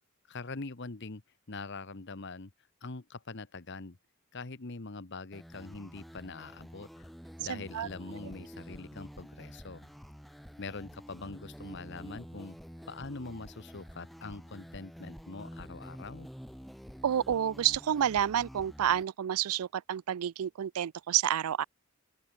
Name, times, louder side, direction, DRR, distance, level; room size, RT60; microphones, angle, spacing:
voice 1, 0.3-1.2 1.5-2.5 2.8-4.0 4.3-7.1 7.4-9.9 10.6-12.6 12.9-16.3, left 3 dB, 50° left, 1.1 m, -43 dB
sound 1, 5.3-19.0, equal, ahead, 1.0 m, -49 dB
voice 2, 7.5-7.9 17.0-21.6, right 10 dB, 80° right, 0.4 m, -29 dB
open air
head